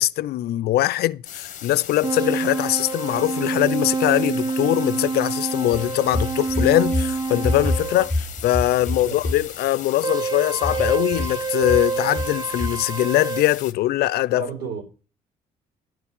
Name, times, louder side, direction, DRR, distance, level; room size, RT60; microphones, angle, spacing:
voice 1, 0.0-14.5, left 15 dB, 70° left, 0.6 m, -22 dB
sound 1, 1.2-13.7, left 10 dB, 50° left, 1.1 m, -38 dB
sound 2, 2.0-8.1 10.0-13.4, right 4 dB, 25° right, 0.5 m, -27 dB
sound 3, 5.7-7.1 7.4-9.4 10.6-11.4 11.6-11.8 12.2-12.3 12.6-12.7, left 2 dB, 5° left, 1.3 m, -26 dB
voice 2, 8.8-9.2 14.3-14.8, right 5 dB, 75° right, 4.9 m, -33 dB
12.0 x 4.6 x 7.1 m
cardioid pair, 110°, 17 cm